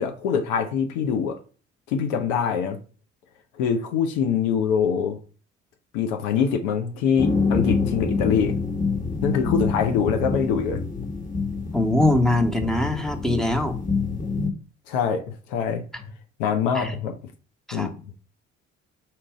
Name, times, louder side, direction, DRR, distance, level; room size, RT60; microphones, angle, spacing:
voice 1, 0.0-1.4 1.9-2.8 3.6-5.2 5.9-8.6 9.2-10.8 14.9-15.8 16.4-17.1 17.7-18.0, left 7 dB, 80° left, 0.7 m, -24 dB
sound 1, 7.2-14.5, left 4 dB, 25° left, 1.2 m, -26 dB
voice 2, 11.7-13.8 15.9-16.0 16.7-16.9 17.7-17.9, left 1 dB, ahead, 1.0 m, -22 dB
4.4 x 2.6 x 4.7 m
hypercardioid pair, 50°, 33 cm